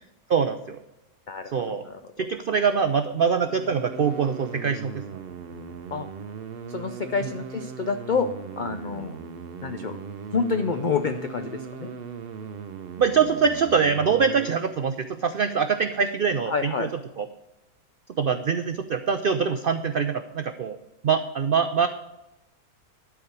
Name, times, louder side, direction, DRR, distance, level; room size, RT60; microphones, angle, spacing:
voice 1, 0.3-0.8 1.5-1.8 2.2-5.2 7.2-7.3 13.0-16.9 17.2-17.3 18.2-20.8 21.0-21.9, right 6 dB, 75° right, 9 dB, 0.5 m, -24 dB
voice 2, 1.3-2.3 5.9-6.1 6.7-8.3 8.6-9.2 9.6-10.0 10.3-11.9 16.5-16.9, left 5 dB, 70° left, 8 dB, 0.4 m, -28 dB
sound 1, 3.2-14.6, right 6 dB, 50° right, 0.8 m, -39 dB
12.0 x 4.8 x 8.1 m, 0.94 s
omnidirectional pair, 1.6 m